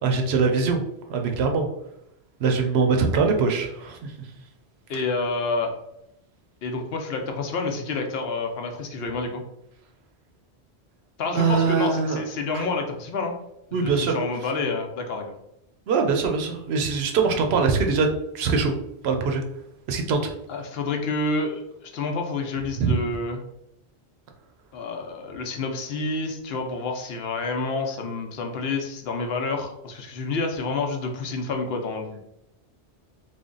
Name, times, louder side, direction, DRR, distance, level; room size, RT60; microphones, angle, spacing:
voice 1, 0.0-0.8 1.1-1.7 2.4-4.1 4.9-5.0 11.3-12.2 12.5-12.6 13.7-14.2 15.9-18.1 18.3-18.7 19.0-19.4 19.9-20.3 22.8-22.9, right 5 dB, 75° right, 4 dB, 0.8 m, -22 dB
voice 2, 4.9-5.7 6.6-9.4 11.2-13.3 13.7-15.3 20.5-23.4 24.7-32.2, left 3 dB, 70° left, 3 dB, 0.8 m, -28 dB
3.3 x 2.2 x 3.7 m, 0.80 s
omnidirectional pair, 1.1 m